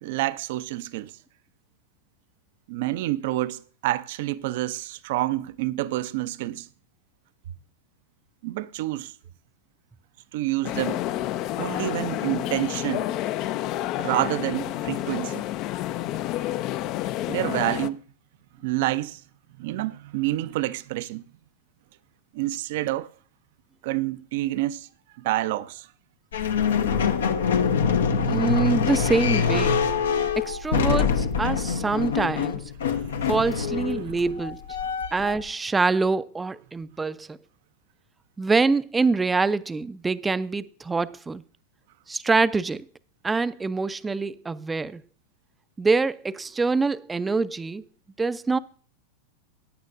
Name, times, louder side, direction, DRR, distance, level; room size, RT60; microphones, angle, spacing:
voice 1, 0.0-1.1 2.7-6.7 8.4-9.1 10.3-11.0 11.6-13.1 14.0-15.4 17.3-18.0 18.6-19.2 19.6-21.2 22.3-23.1 23.8-24.9 25.2-25.9 33.1-33.3 33.9-34.2, right 16 dB, 60° right, 0.6 m, -28 dB
sound 1, 10.6-17.9, left 14 dB, 45° left, 0.5 m, -29 dB
sound 2, 26.3-35.4, left 6 dB, 75° left, 0.9 m, -24 dB
voice 2, 28.2-29.8 30.4-32.6 33.3-34.6 35.1-37.4 38.4-41.4 42.1-42.8 43.2-45.0 45.8-47.8 48.2-48.6, right 4 dB, 15° right, 0.5 m, -25 dB
16.0 x 9.5 x 2.6 m
hypercardioid pair, 95°, 0 cm